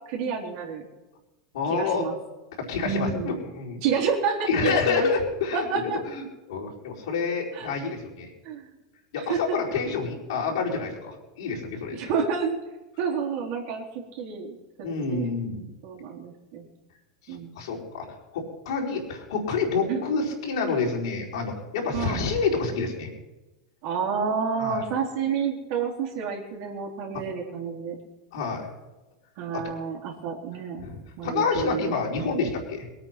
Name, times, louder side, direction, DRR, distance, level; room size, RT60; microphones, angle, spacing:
voice 1, 0.1-0.8 1.7-2.2 2.8-3.3 3.8-5.1 5.5-6.0 7.5-7.7 8.4-8.6 9.3-9.4 11.9-12.6 13.0-13.8 14.1-15.3 15.8-16.7 17.3-17.6 19.9-20.0 21.9-22.2 23.8-28.0 29.4-30.9 31.2-31.9, right 6 dB, 55° right, 0 dB, 3.9 m, -29 dB
voice 2, 1.5-2.0 2.6-3.8 4.5-8.3 9.1-12.0 14.8-15.6 17.3-23.1 24.6-24.8 27.1-27.2 28.3-28.7 29.5-29.7 30.8-32.9, left 4 dB, 70° left, -3 dB, 4.9 m, -28 dB
22.0 x 8.9 x 5.9 m, 1.1 s
hypercardioid pair, 90°, 3 cm